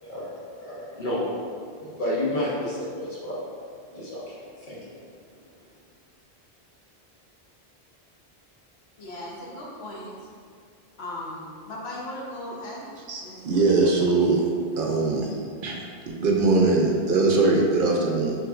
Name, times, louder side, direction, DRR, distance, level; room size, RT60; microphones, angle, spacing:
voice 1, 0.0-1.3 1.8-3.4 3.9-4.9, left 1 dB, 50° left, -7 dB, 1.2 m, -31 dB
voice 2, 9.0-10.1 11.0-12.9 13.2-13.7 14.1-14.4 14.9-15.0, left 1 dB, 80° left, -4 dB, 1.1 m, -38 dB
voice 3, 13.1-14.5 14.8-15.3 15.6-15.8 16.1-18.4, right 3 dB, 60° right, -1 dB, 0.7 m, -21 dB
6.0 x 3.1 x 2.4 m, 2.2 s
omnidirectional pair, 1.1 m